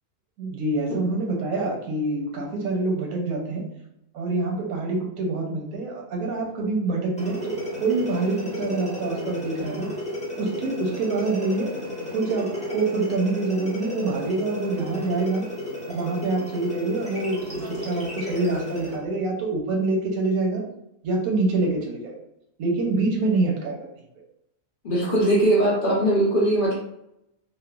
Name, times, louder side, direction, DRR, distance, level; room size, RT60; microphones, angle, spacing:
voice 1, 0.4-3.7 4.1-9.9 10.4-11.7 12.1-15.5 15.9-20.6 21.0-22.2 22.6-23.9, right 3 dB, 90° right, 0 dB, 1.2 m, -26 dB
sound 1, 7.2-19.0, left 1 dB, 10° left, 0.5 m, -33 dB
voice 2, 24.8-26.7, right 1 dB, 50° left, -6 dB, 0.6 m, -20 dB
3.0 x 2.1 x 2.2 m, 0.80 s
omnidirectional pair, 1.4 m